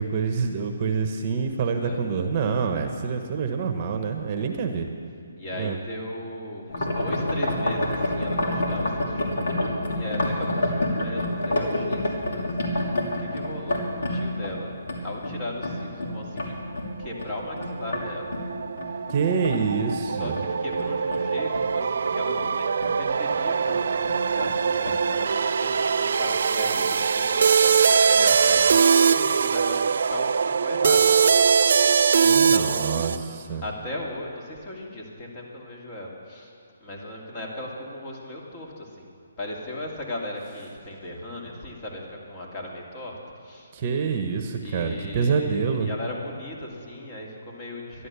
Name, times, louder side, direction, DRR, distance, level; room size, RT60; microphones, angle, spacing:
voice 1, 0.0-4.9 5.6-5.8 19.1-20.4 32.2-33.6 43.7-45.9, right 5 dB, 35° right, 6 dB, 1.0 m, -26 dB
voice 2, 1.6-2.0 5.4-12.5 12.7-14.8 15.0-16.6 17.0-18.3 20.0-31.1 32.3-36.5 36.8-39.1 39.4-43.7 44.6-48.1, left 1 dB, 30° left, -2 dB, 2.5 m, -37 dB
sound 1, 6.7-18.0 18.3-21.7 22.0-22.5 22.8-23.0 23.3-23.4 23.7-24.6 24.8-25.0, left 1 dB, 65° left, 2.7 m, -28 dB
sound 2, 16.9-33.2, right 6 dB, 60° right, 0.4 m, -22 dB
13.0 x 11.0 x 6.9 m, 2.4 s
hypercardioid pair, 155°, 0 cm